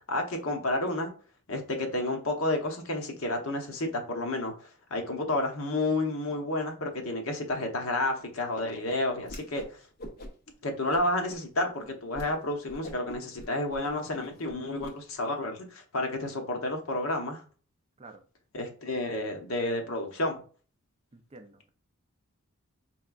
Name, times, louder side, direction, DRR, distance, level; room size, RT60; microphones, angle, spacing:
voice 1, 0.1-1.1 1.5-9.8 10.6-17.4 18.5-20.4, left 2 dB, 70° left, 3 dB, 1.0 m, -31 dB
Whoosh swoosh swish, 9.2-9.7 10.0-10.5 10.9-11.4 11.8-11.9 12.1-12.3 12.7-14.9, left 1 dB, 45° left, 0.7 m, -44 dB
voice 2, 21.1-21.7, right 2 dB, 25° right, 7 dB, 0.4 m, -50 dB
4.5 x 3.5 x 2.4 m, 0.39 s
head